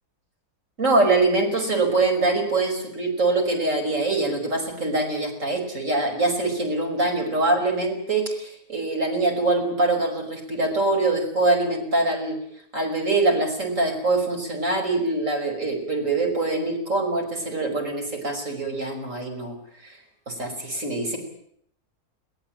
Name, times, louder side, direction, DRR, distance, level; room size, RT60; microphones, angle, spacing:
voice 1, 0.8-12.4 12.7-19.6 19.8-20.0 20.3-21.2, right 2 dB, 55° right, 2 dB, 6.0 m, -24 dB
22.0 x 19.5 x 9.0 m, 0.69 s
omnidirectional pair, 1.6 m